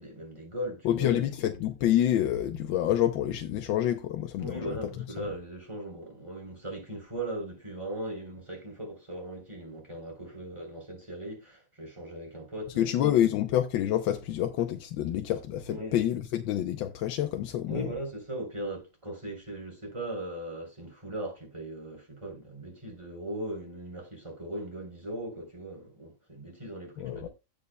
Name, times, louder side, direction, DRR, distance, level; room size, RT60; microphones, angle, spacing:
voice 1, 0.0-1.2 4.4-13.1 15.7-15.9 17.7-27.3, right 1 dB, 15° right, 3.6 m, -39 dB
voice 2, 0.8-4.8 12.8-17.9 27.0-27.3, left 11 dB, 90° left, 1.5 m, -27 dB
16.5 x 5.5 x 2.2 m
omnidirectional pair, 2.1 m